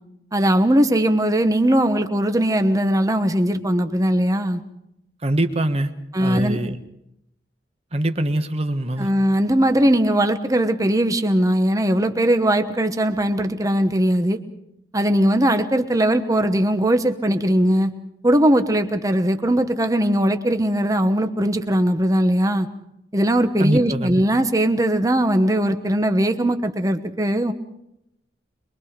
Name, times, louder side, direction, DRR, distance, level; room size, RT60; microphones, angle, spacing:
voice 1, 0.3-4.6 6.1-6.6 9.0-14.4 14.9-17.9 18.2-22.7 23.1-27.5, right 1 dB, 20° right, 8 dB, 1.1 m, -19 dB
voice 2, 5.2-5.9 6.2-6.8 7.9-9.1 23.6-24.2, right 1 dB, 35° right, 8 dB, 1.4 m, -23 dB
24.0 x 23.0 x 5.1 m, 0.83 s
head